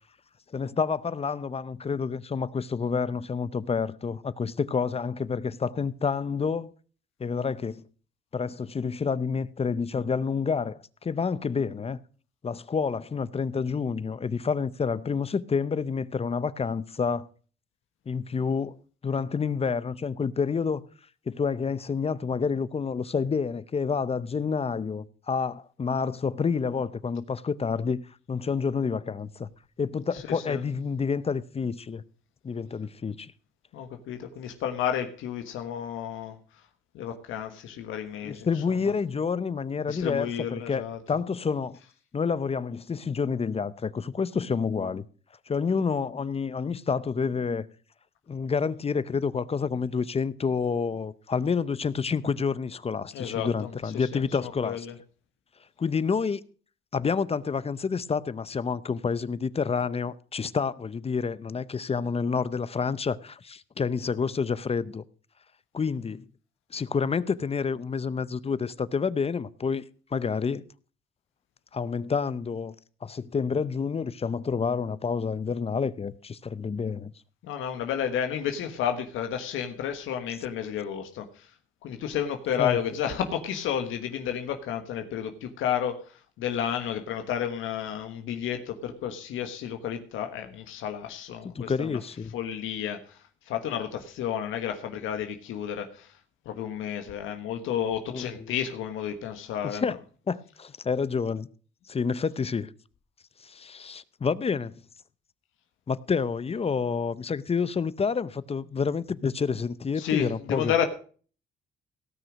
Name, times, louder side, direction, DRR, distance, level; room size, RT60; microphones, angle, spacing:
voice 1, 0.5-6.7 7.2-7.8 8.3-12.0 12.4-17.3 18.1-18.8 19.0-20.8 21.3-29.5 29.8-32.0 32.4-33.3 38.2-40.8 41.1-41.8 42.1-45.1 45.5-47.7 48.3-54.9 55.8-56.4 56.9-65.0 65.7-66.3 66.7-69.8 70.1-70.7 71.7-72.7 73.0-77.1 82.6-82.8 91.5-92.3 98.1-98.5 99.6-100.0 100.3-101.5 101.9-102.7 103.4-104.8 105.9-110.7, left 5 dB, 30° left, 0.7 m, -29 dB
voice 2, 33.7-36.3 36.9-38.5 39.9-41.0 53.1-54.9 77.4-81.5 81.8-86.0 86.4-92.0 92.3-93.2 93.5-96.1 96.4-99.8 110.0-110.9, left 9 dB, 90° left, 1.4 m, -31 dB
17.5 x 6.2 x 6.2 m
cardioid pair, 90°, 20 cm